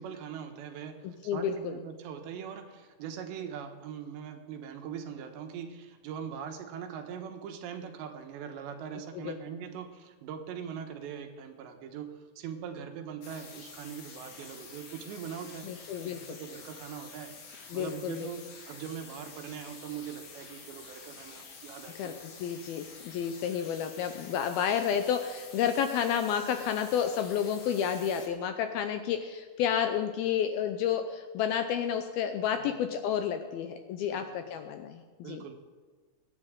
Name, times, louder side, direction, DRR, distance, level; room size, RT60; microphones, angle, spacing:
voice 1, 0.0-15.7 16.0-17.3 17.7-22.2 32.6-32.7 34.1-34.3 35.2-35.5, right 8 dB, 80° right, 5 dB, 3.4 m, -41 dB
voice 2, 1.0-1.8 9.1-9.4 15.6-16.4 17.7-18.3 22.0-22.1 22.4-35.4, left 8 dB, 80° left, 7 dB, 2.3 m, -31 dB
sound 1, 13.2-28.3, left 5 dB, 50° left, 2.3 m, -49 dB
24.0 x 9.8 x 3.7 m, 1.5 s
omnidirectional pair, 5.0 m